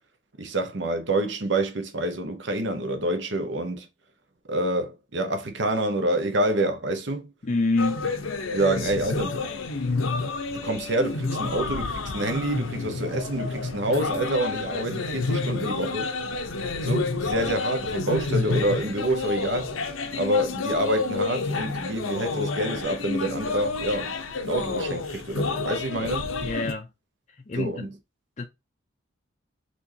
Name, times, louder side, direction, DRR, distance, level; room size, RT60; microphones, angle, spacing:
voice 1, 0.4-3.9 4.5-7.3 8.5-9.6 10.5-16.1 16.8-19.7 20.1-26.3 27.6-27.9, right 1 dB, 65° right, 0.9 m, -27 dB
voice 2, 7.4-8.1 26.4-26.9 27.4-27.9 28.4-28.5, left 3 dB, 35° left, 0.5 m, -26 dB
sound 1, 7.8-26.7, left 3 dB, 85° left, 0.8 m, -29 dB
4.4 x 3.0 x 2.8 m
head